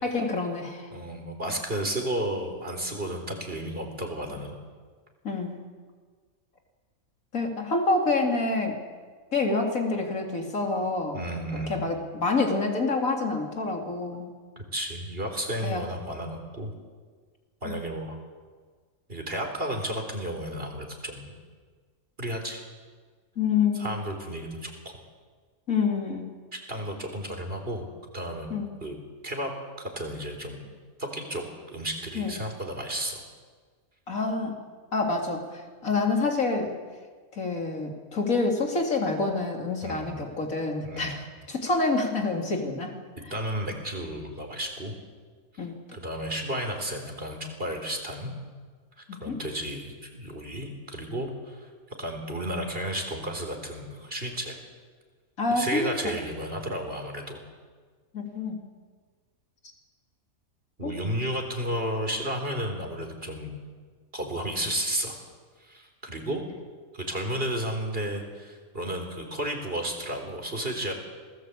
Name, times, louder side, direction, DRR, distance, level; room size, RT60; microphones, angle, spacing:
voice 1, 0.0-0.9 5.2-5.6 7.3-8.8 9.3-11.2 11.7-14.3 15.6-15.8 17.6-17.7 23.4-23.9 25.7-26.2 28.5-28.7 32.1-32.3 34.1-34.6 34.9-36.7 37.3-42.9 45.6-45.8 49.1-49.4 55.4-56.1 58.1-58.6 60.8-60.9, left 3 dB, 70° left, 2 dB, 3.4 m, -27 dB
voice 2, 0.9-4.5 11.1-11.9 14.6-16.7 17.6-18.2 19.1-21.3 22.2-22.6 23.7-24.9 26.5-27.9 28.1-28.5 28.8-28.9 29.2-29.5 29.8-30.7 31.0-31.4 31.7-33.2 39.8-40.2 40.8-41.1 43.3-44.9 45.5-45.7 45.9-48.3 49.2-51.7 52.0-54.6 55.5-57.4 60.8-63.5 64.1-65.2 65.6-66.4 66.9-70.9, right 1 dB, 40° right, 4 dB, 4.3 m, -32 dB
27.0 x 19.5 x 8.4 m, 1.5 s
omnidirectional pair, 1.5 m